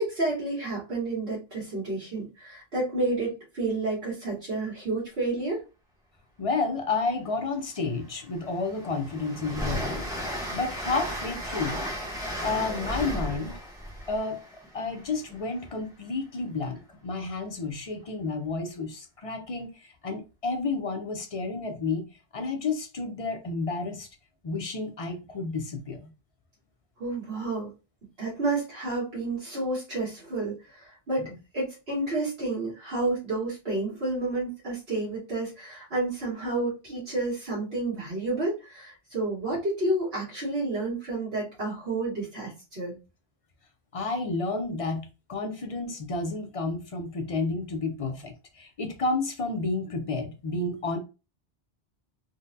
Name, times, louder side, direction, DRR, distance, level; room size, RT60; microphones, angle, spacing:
voice 1, 0.0-5.6 27.0-27.7 28.2-43.0, right 2 dB, 70° right, 1.6 m, -30 dB
voice 2, 6.4-10.1 10.5-11.9 12.4-13.6 14.1-14.4 14.7-19.7 20.0-22.1 22.3-24.1 24.4-26.1 43.9-48.3 48.6-51.0, left 3 dB, 40° left, 0.5 m, -31 dB
Train, 7.4-7.5 7.9-15.7, equal, 5° right, 0.9 m, -35 dB
3.8 x 2.1 x 2.6 m
omnidirectional pair, 1.1 m